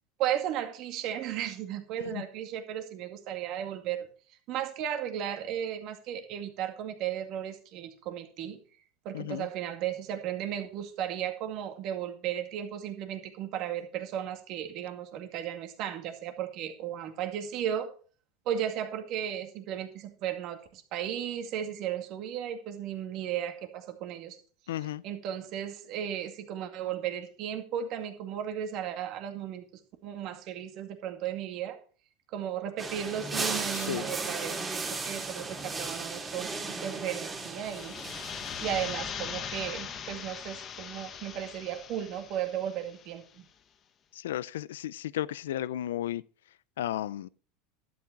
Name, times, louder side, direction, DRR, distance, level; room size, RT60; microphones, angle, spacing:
voice 1, 0.2-4.1 4.5-8.6 9.0-17.9 18.5-24.4 25.0-29.6 30.0-31.8 32.3-36.5 36.8-43.4, right 10 dB, 55° right, 2.2 m, -35 dB
voice 2, 9.1-9.5 24.7-25.0 33.7-34.1 44.1-46.2 46.8-47.3, left 12 dB, 90° left, 0.4 m, -34 dB
sound 1, 32.8-39.0, right 3 dB, 20° right, 2.4 m, -36 dB
sound 2, 37.5-43.1, left 7 dB, 35° left, 1.3 m, -40 dB
12.0 x 8.5 x 4.6 m
supercardioid pair, 115°, 0 cm